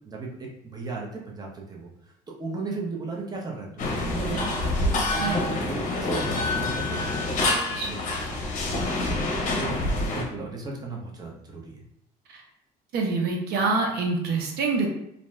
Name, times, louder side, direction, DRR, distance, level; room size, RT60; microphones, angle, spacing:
voice 1, 0.0-2.1 2.4-4.5 5.1-7.4 7.7-8.0 9.1-9.3 9.5-11.8, right 3 dB, 25° right, -2 dB, 0.6 m, -36 dB
sound 1, 3.8-10.2, left 2 dB, 50° left, 0.7 m, -27 dB
voice 2, 5.1-5.5 7.5-7.9 8.6-9.0 12.3-12.4 12.9-14.9, right 3 dB, 70° right, 1 dB, 0.6 m, -27 dB
2.6 x 2.2 x 3.1 m, 0.76 s
cardioid pair, 110°, 17 cm